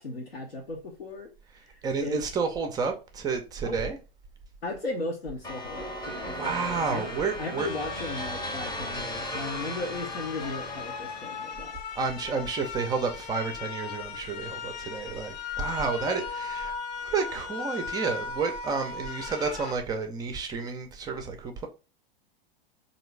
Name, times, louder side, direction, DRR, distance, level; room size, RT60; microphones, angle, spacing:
voice 1, 0.0-2.2 3.6-3.8 4.6-7.1 7.4-11.8, left 2 dB, 80° left, 0.8 m, -36 dB
voice 2, 1.8-4.0 6.3-7.7 12.0-16.7 17.0-21.7, right 5 dB, 15° right, 0.4 m, -30 dB
sound 1, 5.4-11.7, left 1 dB, 15° left, 0.8 m, -36 dB
sound 2, 8.2-19.7, left 6 dB, 45° left, 0.5 m, -38 dB
3.7 x 2.7 x 3.1 m
figure-of-eight pair, 95°, 30 cm